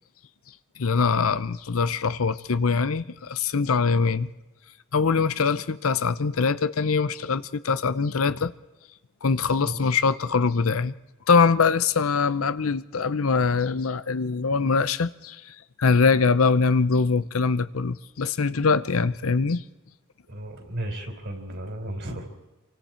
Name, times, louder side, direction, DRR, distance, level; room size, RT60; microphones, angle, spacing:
voice 1, 0.8-4.3 4.9-8.5 9.2-10.9 11.3-19.6, left 4 dB, 80° left, 14 dB, 0.7 m, -23 dB
voice 2, 20.3-22.3, right 1 dB, 55° right, 4 dB, 4.1 m, -34 dB
27.5 x 24.0 x 4.5 m, 1.1 s
head